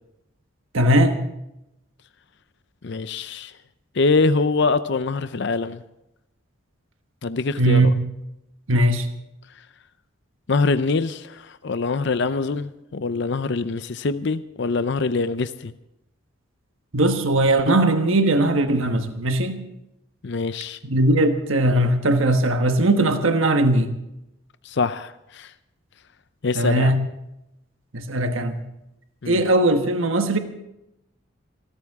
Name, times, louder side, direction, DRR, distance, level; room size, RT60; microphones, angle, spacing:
voice 1, 0.7-1.2 7.6-7.9 8.7-9.1 16.9-19.6 20.8-23.9 26.5-27.0 27.9-28.6 29.2-30.4, right 1 dB, 80° right, 6 dB, 1.3 m, -19 dB
voice 2, 2.8-3.5 4.0-5.8 7.2-7.9 10.5-15.7 20.2-20.8 24.7-25.5 26.4-26.9 29.2-29.4, left 3 dB, 60° left, 12 dB, 0.6 m, -24 dB
26.0 x 14.0 x 3.6 m, 0.88 s
head